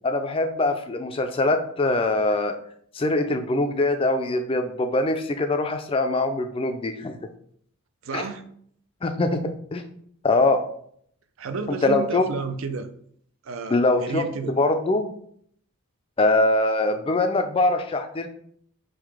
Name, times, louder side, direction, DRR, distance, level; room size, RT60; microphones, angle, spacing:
voice 1, 0.0-2.6 2.9-7.2 8.1-8.2 9.0-9.8 10.2-10.6 11.8-12.2 13.7-15.1 16.2-18.3, left 2 dB, 25° left, 7 dB, 0.3 m, -23 dB
voice 2, 8.0-8.4 11.4-12.9 13.4-14.5, right 4 dB, 65° right, 9 dB, 0.4 m, -31 dB
3.7 x 2.8 x 4.7 m, 0.64 s
head